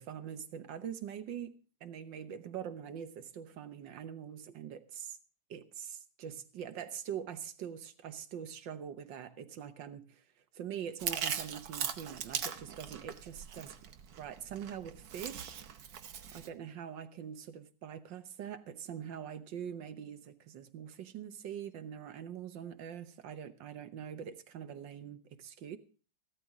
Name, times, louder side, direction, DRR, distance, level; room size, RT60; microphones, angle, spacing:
voice 1, 0.0-5.2 5.5-10.2 10.5-13.7 14.2-15.6 16.3-25.8, right 8 dB, 80° right, 1.7 m, -43 dB
Chewing mastication, 11.0-16.5, right 8 dB, 60° right, 1.3 m, -40 dB
15.5 x 13.0 x 3.6 m
omnidirectional pair, 2.0 m